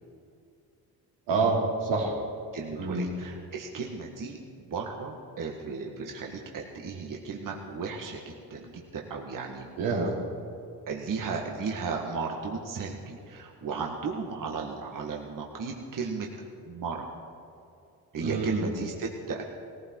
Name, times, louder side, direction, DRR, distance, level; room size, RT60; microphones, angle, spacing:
voice 1, 1.3-2.2 2.8-3.1 9.8-10.1 18.2-18.7, right 3 dB, 90° right, -3 dB, 3.2 m, -27 dB
voice 2, 2.5-9.7 10.9-16.3 16.7-17.1 18.1-19.4, right 4 dB, 50° right, 0 dB, 1.9 m, -35 dB
18.0 x 16.0 x 4.7 m, 2.4 s
supercardioid pair, 75°, 41 cm